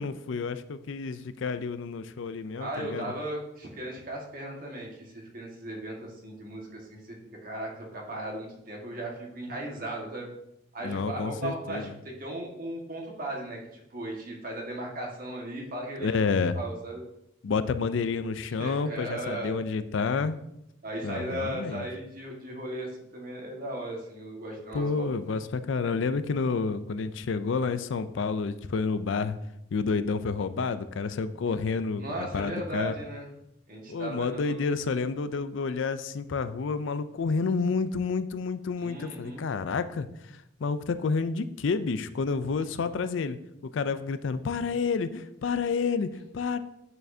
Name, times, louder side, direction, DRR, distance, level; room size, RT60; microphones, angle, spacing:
voice 1, 0.0-3.1 10.8-11.9 16.0-16.6 17.4-20.4 21.0-21.9 24.7-29.4 29.7-33.0 33.9-40.1 40.3-43.4 43.7-46.6, left 4 dB, 70° left, 12 dB, 0.4 m, -29 dB
voice 2, 2.5-7.2 7.4-10.3 10.7-16.2 16.5-17.0 18.6-19.6 20.8-25.1 32.0-33.3 33.7-34.5 38.8-39.5, right 1 dB, 45° right, -1 dB, 1.6 m, -37 dB
8.9 x 6.4 x 2.7 m, 0.81 s
head